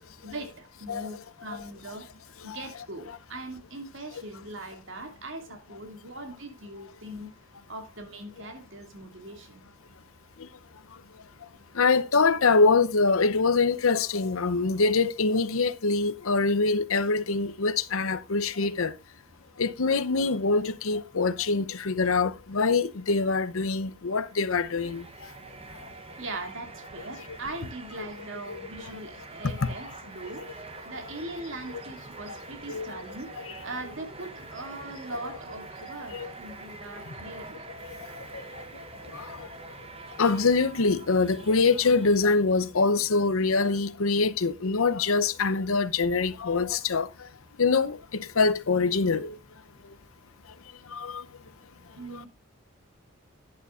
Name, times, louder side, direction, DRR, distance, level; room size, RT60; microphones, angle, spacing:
voice 1, 0.2-2.1 2.4-7.3 7.7-9.6 26.2-33.3 33.6-37.6 40.1-40.2 51.9-52.3, right 2 dB, 60° right, 2.4 m, -40 dB
voice 2, 11.7-18.9 19.6-25.0 28.0-28.1 28.6-28.7 29.6-29.7 31.7-31.8 32.3-32.4 32.7-33.0 36.1-36.3 38.1-38.4 39.1-39.5 40.2-47.1 47.6-49.4 50.9-51.2 52.1-52.2, left 4 dB, 75° left, 0.7 m, -24 dB
sound 1, 24.1-42.6, right 3 dB, 25° right, 1.0 m, -45 dB
11.0 x 11.0 x 2.5 m
head